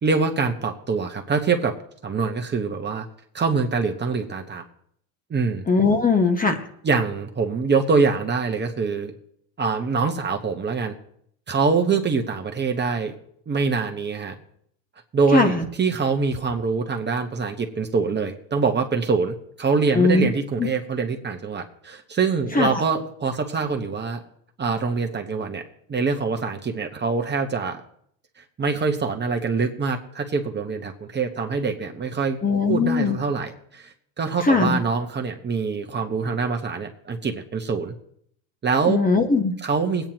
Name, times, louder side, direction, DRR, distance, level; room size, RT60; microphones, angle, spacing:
voice 1, 0.0-1.7 2.0-3.0 3.3-4.6 5.3-5.6 6.8-9.1 9.6-10.9 11.5-13.1 13.5-14.3 15.1-24.2 24.6-25.6 25.9-27.8 28.6-32.4 32.7-37.9 38.6-39.0 39.6-40.1, right 4 dB, 25° right, 4 dB, 1.1 m, -24 dB
voice 2, 5.7-6.6 15.3-15.6 19.9-20.3 20.6-20.7 22.5-22.7 32.4-33.2 34.4-34.8 38.9-39.5, left 4 dB, 20° left, 6 dB, 1.2 m, -19 dB
20.5 x 9.1 x 3.0 m, 0.67 s
supercardioid pair, 110°, 43 cm